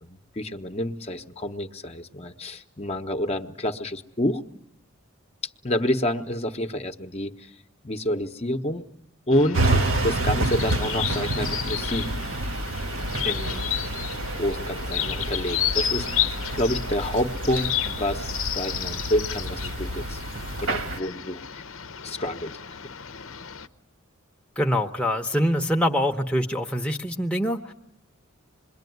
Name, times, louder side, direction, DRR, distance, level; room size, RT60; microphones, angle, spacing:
voice 1, 0.0-4.4 5.6-7.5 7.8-8.8 9.3-9.6 10.0-12.1 13.2-13.7 14.4-16.2 16.5-20.2 20.6-21.6 22.0-22.5, left 1 dB, 30° left, 6 dB, 1.1 m, -28 dB
sound 1, 9.3-23.7, left 10 dB, 75° left, 1.0 m, -32 dB
sound 2, 9.5-21.0, right 2 dB, 70° right, 1.8 m, -29 dB
voice 2, 24.6-27.7, equal, 5° left, 1 dB, 1.0 m, -24 dB
27.0 x 22.5 x 9.4 m, 0.82 s
head